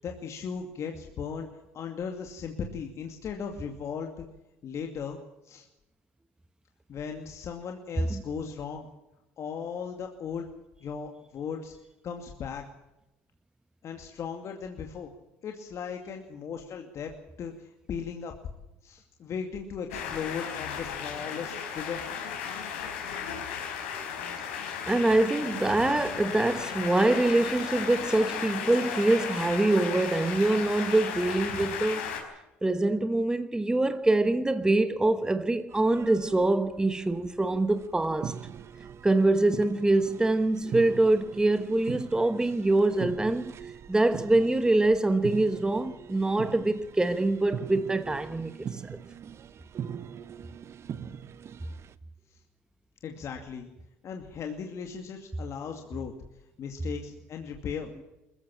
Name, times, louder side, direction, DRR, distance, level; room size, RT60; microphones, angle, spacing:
voice 1, 0.0-1.5 1.7-4.3 4.6-5.2 5.4-5.7 6.9-8.9 9.4-10.5 10.8-11.7 12.0-12.6 13.8-15.1 15.4-17.1 17.4-18.3 18.8-22.0 52.3-52.4 53.0-53.7 54.0-56.1 56.6-57.9, left 6 dB, 50° left, 2.4 m, -37 dB
sound 1, 19.9-32.2, left 7 dB, 90° left, 4.8 m, -35 dB
voice 2, 24.4-32.1 32.6-38.4 39.0-43.5 43.9-49.0, right 2 dB, 10° right, 1.2 m, -25 dB
sound 2, 35.7-51.9, right 8 dB, 45° right, 1.0 m, -41 dB
21.0 x 15.0 x 8.8 m
supercardioid pair, 75°, 6 cm